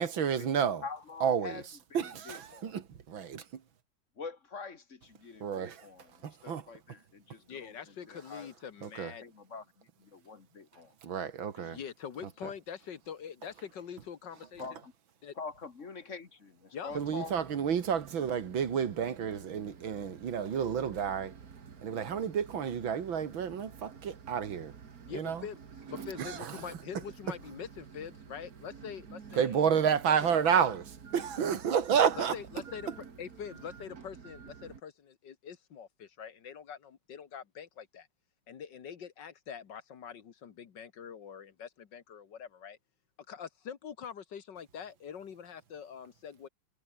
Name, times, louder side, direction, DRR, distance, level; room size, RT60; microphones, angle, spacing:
voice 1, 0.0-0.8 1.2-1.6 1.9-3.6 5.4-5.9 6.2-6.6 8.8-9.1 11.0-11.8 16.9-21.4 21.8-24.7 25.1-25.5 26.2-26.7 29.4-30.8 31.1-32.4, right 7 dB, 85° right, 2.6 m, -30 dB
voice 2, 0.8-2.8 4.2-8.5 9.2-10.9 11.6-11.7 14.6-14.9 15.4-17.4, left 4 dB, 40° left, 1.9 m, -45 dB
voice 3, 7.5-9.2 11.7-14.6 15.2-15.3 16.7-16.9 25.1-25.6 25.9-29.5 30.2-30.5 32.2-32.9 33.2-38.1 38.5-42.8 43.3-46.5, left 7 dB, 65° left, 2.1 m, -44 dB
sound 1, 16.9-34.8, right 6 dB, 50° right, 2.2 m, -50 dB
omnidirectional pair, 2.1 m